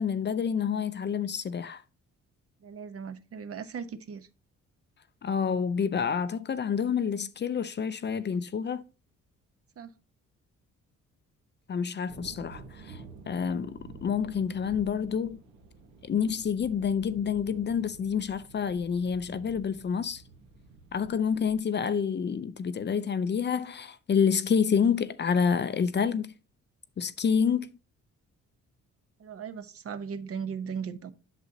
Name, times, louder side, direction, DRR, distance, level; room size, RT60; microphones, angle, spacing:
voice 1, 0.0-1.8 5.2-8.8 11.7-15.4 16.0-20.2 20.9-26.3 27.0-27.7, left 7 dB, 35° left, 0.5 m, -28 dB
voice 2, 2.6-4.3 9.8-9.9 29.2-31.1, right 6 dB, 50° right, 0.9 m, -37 dB
sound 1, 12.1-21.6, right 3 dB, 85° right, 1.5 m, -50 dB
8.1 x 6.2 x 2.7 m
cardioid pair, 90°, 30 cm